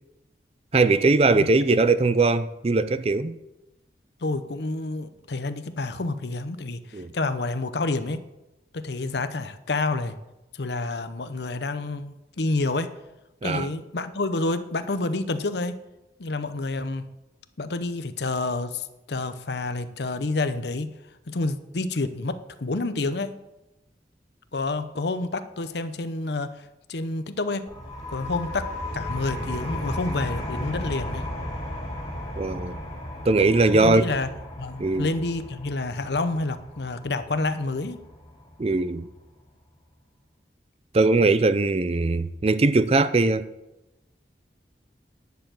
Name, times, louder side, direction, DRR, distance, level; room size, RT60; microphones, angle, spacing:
voice 1, 0.7-3.3 6.9-7.1 13.4-13.7 32.4-32.8 33.3-34.0 34.8-35.1 38.6-39.1 40.9-43.5, right 3 dB, 35° right, 0.5 m, -20 dB
voice 2, 4.2-8.2 8.7-10.2 10.5-12.9 13.4-15.8 16.2-17.1 17.6-20.9 21.3-23.4 24.5-26.6 26.9-27.7 28.1-31.3 33.7-34.3 34.6-38.0, left 2 dB, 70° left, 0.8 m, -29 dB
sound 1, 27.7-39.0, left 1 dB, 25° left, 3.0 m, -35 dB
10.5 x 6.7 x 7.5 m
head